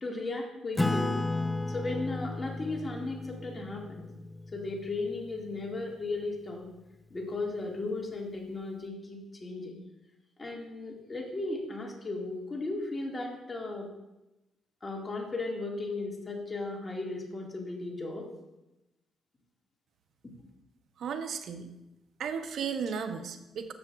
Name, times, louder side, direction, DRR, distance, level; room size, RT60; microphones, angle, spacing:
voice 1, 0.0-1.2 1.7-4.1 4.5-6.7 7.1-9.8 10.4-13.9 14.8-18.3 20.2-20.3, left 2 dB, 25° left, -1 dB, 1.9 m, -36 dB
Acoustic guitar / Strum, 0.8-5.8, left 2 dB, 10° left, 0.4 m, -34 dB
voice 2, 21.0-21.7 22.2-23.7, right 6 dB, 65° right, 8 dB, 0.7 m, -35 dB
12.0 x 6.9 x 2.4 m, 0.97 s
cardioid pair, 90°, 0 cm